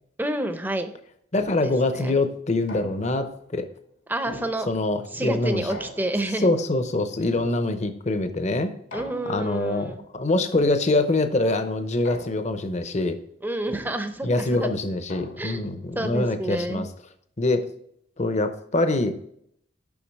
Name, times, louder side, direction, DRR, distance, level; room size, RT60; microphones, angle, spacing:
voice 1, 0.2-0.9 1.6-2.1 4.1-4.7 5.1-6.5 8.9-10.0 13.4-14.7 15.4-15.7 16.0-16.9, right 1 dB, 10° right, 8 dB, 0.6 m, -29 dB
sound 1, 1.3-1.9 2.7-3.4 4.2-5.0 5.7-6.5 7.3-8.1 8.9-9.6 10.5-11.2 12.0-12.8 13.7-15.7, left 1 dB, 80° left, 1.7 m, -43 dB
voice 2, 1.3-3.7 4.7-5.7 6.4-8.7 9.3-13.2 14.2-16.9 17.4-17.6 18.2-19.1, left 2 dB, 35° left, 9 dB, 0.7 m, -24 dB
7.2 x 5.8 x 4.6 m, 0.70 s
head